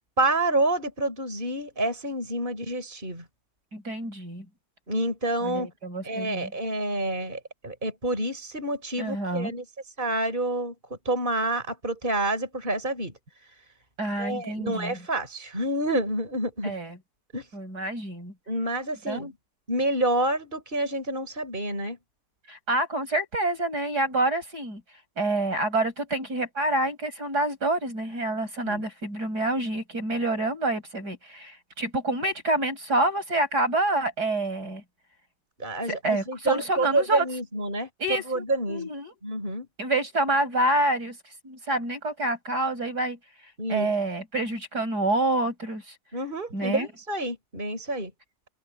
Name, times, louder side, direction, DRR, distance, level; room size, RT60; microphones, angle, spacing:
voice 1, 0.2-3.2 4.9-5.7 6.0-9.6 10.0-10.7 11.1-13.1 14.2-16.7 17.3-17.4 18.5-19.3 19.7-22.0 28.6-28.8 35.6-37.9 38.3-38.9 39.2-39.7 43.6-43.9 46.1-48.1, right 1 dB, 20° right, 5.9 m, -28 dB
voice 2, 3.7-4.5 5.4-6.5 9.0-9.5 14.0-15.0 16.6-17.0 17.5-18.3 19.1-19.3 22.5-24.8 25.2-34.8 35.8-37.3 38.0-39.1 39.8-41.2 41.4-46.0 46.5-46.9, right 2 dB, 45° right, 7.4 m, -27 dB
open air
omnidirectional pair, 2.4 m